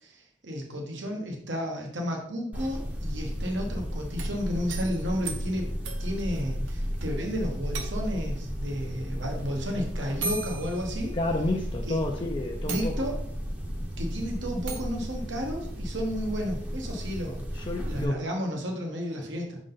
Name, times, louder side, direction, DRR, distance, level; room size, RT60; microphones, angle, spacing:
voice 1, 0.0-5.7 6.0-11.1 11.9-12.0 12.6-13.2 14.0-19.6, equal, 75° right, 1 dB, 1.2 m, -32 dB
sound 1, 2.5-18.0, equal, 10° right, 0.8 m, -34 dB
sound 2, 4.0-7.1 7.3-7.4 7.7-8.3 9.4-9.5 10.2-11.6 12.1-12.2 12.7-13.4 14.7-15.0, right 4 dB, 90° right, 0.9 m, -38 dB
voice 2, 11.1-13.0 17.5-18.3, left 2 dB, 25° left, 2 dB, 0.5 m, -30 dB
6.5 x 3.8 x 3.9 m, 0.65 s
head